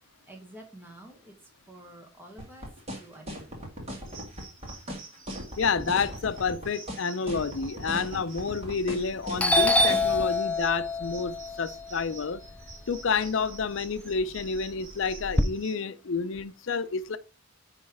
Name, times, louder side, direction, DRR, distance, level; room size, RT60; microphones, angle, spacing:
voice 1, 0.1-1.4 1.7-3.6 7.2-7.3, right 1 dB, 10° right, 1.3 m, -49 dB
sound 1, 2.4-10.3, equal, 30° right, 1.7 m, -37 dB
sound 2, 4.1-15.8, right 5 dB, 65° right, 1.5 m, -50 dB
voice 2, 5.6-12.4 12.9-17.2, left 5 dB, 60° left, 0.5 m, -29 dB
Doorbell, 8.8-9.1 9.4-13.5 13.9-15.4, left 2 dB, 5° left, 0.4 m, -26 dB
9.0 x 3.2 x 4.7 m
head